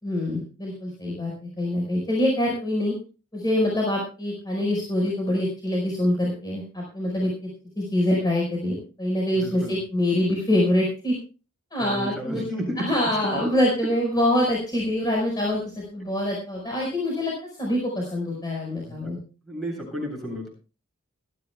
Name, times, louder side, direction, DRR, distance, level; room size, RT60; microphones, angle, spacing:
voice 1, 0.0-2.9 3.3-7.5 7.8-11.2 11.7-12.4 12.8-19.2, left 1 dB, 20° left, -2 dB, 4.9 m, -25 dB
voice 2, 9.4-9.7 11.8-13.1 18.9-19.1 19.4-20.5, equal, ahead, -1 dB, 7.8 m, -32 dB
21.5 x 14.0 x 2.3 m, 0.35 s
head